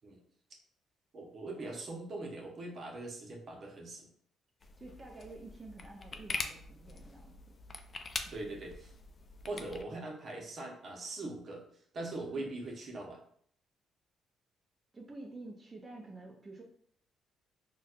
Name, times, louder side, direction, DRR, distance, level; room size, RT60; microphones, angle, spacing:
voice 1, 1.1-4.1 8.3-8.9 9.4-11.6 11.9-13.2, right 2 dB, 50° right, 0 dB, 0.8 m, -41 dB
sound 1, 4.6-9.8, left 3 dB, 40° left, 0.3 m, -43 dB
voice 2, 4.8-7.3 8.2-8.4 12.3-12.5 14.9-16.6, right 2 dB, 20° right, -1 dB, 0.6 m, -49 dB
4.1 x 2.3 x 2.4 m, 0.64 s
cardioid pair, 90°, 0 cm